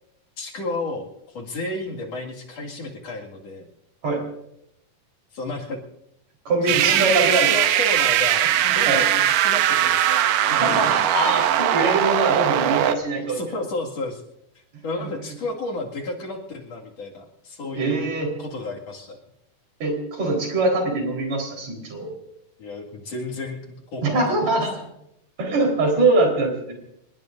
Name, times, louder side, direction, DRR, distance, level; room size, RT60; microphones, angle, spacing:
voice 1, 0.4-3.7 5.3-5.8 6.6-10.9 13.2-14.2 14.8-18.1 18.4-19.2 22.6-24.2, left 2 dB, 55° left, -1 dB, 3.1 m, -32 dB
voice 2, 6.5-7.5 8.6-9.0 10.5-13.4 15.0-15.1 17.7-18.3 19.8-22.1 24.0-24.8 25.4-26.7, right 2 dB, 55° right, 1 dB, 5.5 m, -23 dB
sound 1, 6.7-13.0, right 12 dB, 90° right, 2.5 m, -20 dB
27.5 x 20.0 x 2.6 m, 0.79 s
omnidirectional pair, 3.8 m